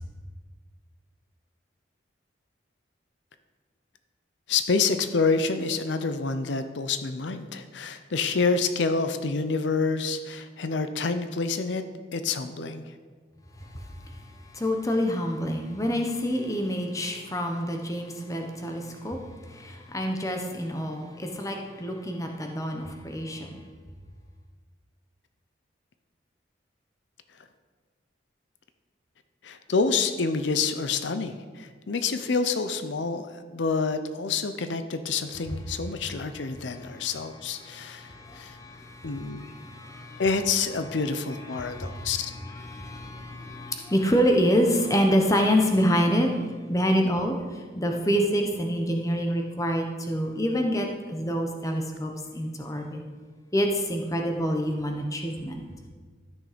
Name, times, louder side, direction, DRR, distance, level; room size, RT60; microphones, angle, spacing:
voice 1, 4.5-11.8 12.1-12.9 29.4-38.6 39.0-39.4 40.2-42.3, left 4 dB, 75° left, 9 dB, 0.6 m, -28 dB
voice 2, 14.5-19.2 19.6-23.6 37.9-40.2 41.5-42.2 42.4-46.4 46.7-53.0 53.5-55.6, equal, 15° left, 3 dB, 1.0 m, -27 dB
13.0 x 6.4 x 5.1 m, 1.5 s
head